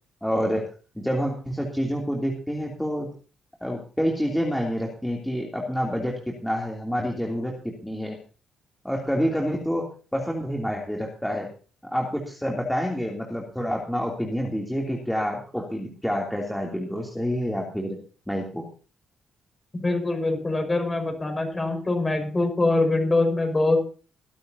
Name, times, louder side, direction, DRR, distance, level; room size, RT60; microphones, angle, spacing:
voice 1, 0.2-0.6 0.9-3.1 3.6-8.2 8.8-9.8 10.1-11.5 11.9-18.0 18.3-18.6, equal, 5° left, -2 dB, 3.1 m, -28 dB
voice 2, 19.8-23.8, left 2 dB, 20° left, 5 dB, 5.4 m, -23 dB
21.5 x 12.0 x 2.9 m, 0.37 s
cardioid pair, 110°, 0 cm